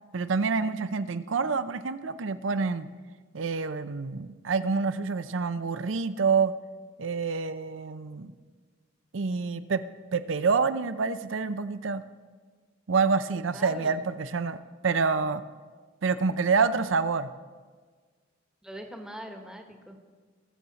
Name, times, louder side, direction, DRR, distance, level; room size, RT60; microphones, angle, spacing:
voice 1, 0.1-2.9 3.3-6.5 7.0-8.3 9.1-9.8 10.1-12.0 12.9-14.6 14.8-15.4 16.0-17.3, right 4 dB, 75° right, 13 dB, 0.6 m, -27 dB
voice 2, 13.5-13.9 16.8-16.9 18.6-20.0, equal, 5° right, 3 dB, 1.2 m, -42 dB
21.0 x 7.2 x 4.0 m, 1.5 s
head